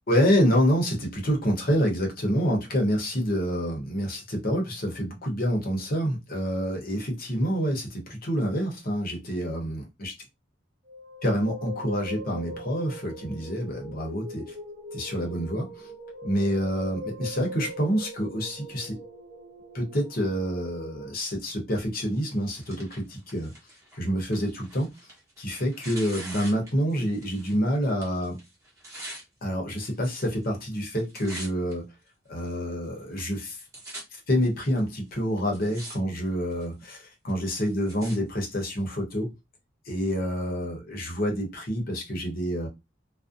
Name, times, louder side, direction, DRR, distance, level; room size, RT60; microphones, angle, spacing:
voice 1, 0.1-10.1 11.2-14.6 14.9-15.9 16.2-19.0 19.7-23.5 23.9-24.9 25.4-28.4 29.4-31.9 32.3-33.6 34.1-39.3 39.8-42.7, equal, 50° left, 0.8 m, -27 dB
sound 1, 10.9-21.1, left 1 dB, 30° right, 0.6 m, -41 dB
Tearing, 22.1-27.6 27.9-29.2 30.0-30.5 30.8-31.7 32.4-32.5 33.2-33.3 33.4-34.0 34.8-34.9 35.4-36.0 36.3-36.7 37.3-38.2 38.9-39.0, right 1 dB, 15° right, 1.0 m, -44 dB
2.5 x 2.0 x 2.5 m
head